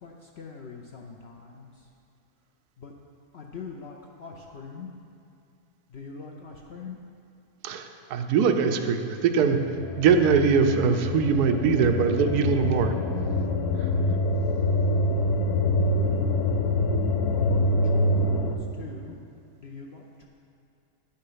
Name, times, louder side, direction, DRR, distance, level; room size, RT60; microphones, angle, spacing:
voice 1, 0.0-1.9 2.8-2.9 3.3-4.9 5.9-7.0 15.9-16.3 17.3-18.4 18.7-19.2 19.6-20.3, left 5 dB, 55° left, 0 dB, 0.7 m, -43 dB
voice 2, 7.6-9.6 10.0-12.9, right 6 dB, 90° right, 7 dB, 1.2 m, -22 dB
sound 1, 9.5-18.5, left 1 dB, 90° left, 1.2 m, -25 dB
10.0 x 6.6 x 5.6 m, 2.5 s
omnidirectional pair, 1.6 m